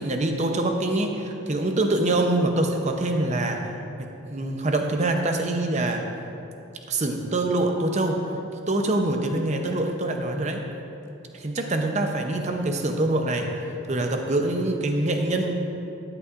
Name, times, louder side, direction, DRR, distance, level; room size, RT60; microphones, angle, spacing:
voice 1, 0.0-3.7 4.0-6.0 6.9-8.2 8.7-10.6 11.3-15.5, right 2 dB, 35° right, 4 dB, 0.7 m, -25 dB
13.0 x 9.8 x 2.5 m, 2.8 s
head